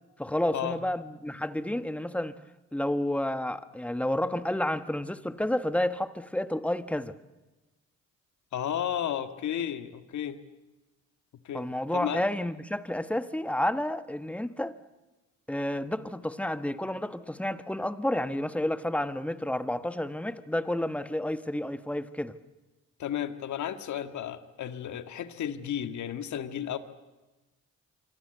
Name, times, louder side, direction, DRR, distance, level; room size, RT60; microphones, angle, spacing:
voice 1, 0.2-2.4 2.7-7.1 11.5-14.8 15.5-22.4, left 1 dB, 5° left, 1.3 m, -30 dB
voice 2, 8.5-10.4 11.4-11.7 11.9-12.2 23.0-26.8, left 10 dB, 70° left, 1.9 m, -33 dB
26.0 x 25.0 x 8.1 m
cardioid pair, 90°, 30 cm